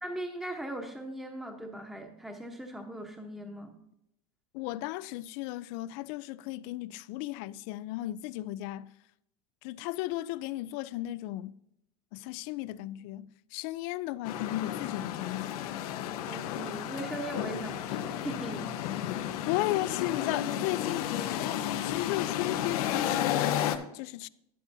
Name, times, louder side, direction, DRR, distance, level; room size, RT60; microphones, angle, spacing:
voice 1, 0.0-3.8 16.3-18.8, right 1 dB, ahead, 1.0 m, -39 dB
voice 2, 4.5-8.9 9.6-11.5 12.1-15.6 19.5-24.3, left 16 dB, 60° left, 0.4 m, -35 dB
rainy city traffic, 14.2-23.8, left 11 dB, 80° left, 0.8 m, -32 dB
10.5 x 9.5 x 2.7 m
supercardioid pair, 120°, 19 cm